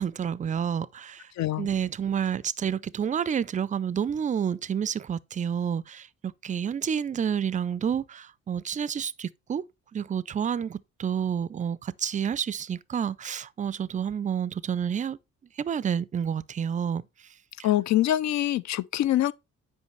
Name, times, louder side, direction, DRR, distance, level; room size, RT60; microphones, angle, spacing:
voice 1, 0.0-1.3 1.6-9.6 9.9-15.2 15.6-17.0, right 8 dB, 25° right, 0.3 m, -29 dB
voice 2, 1.4-1.7 17.6-19.3, left 13 dB, 65° left, 0.4 m, -24 dB
8.3 x 5.1 x 3.1 m
cardioid pair, 90°, 30 cm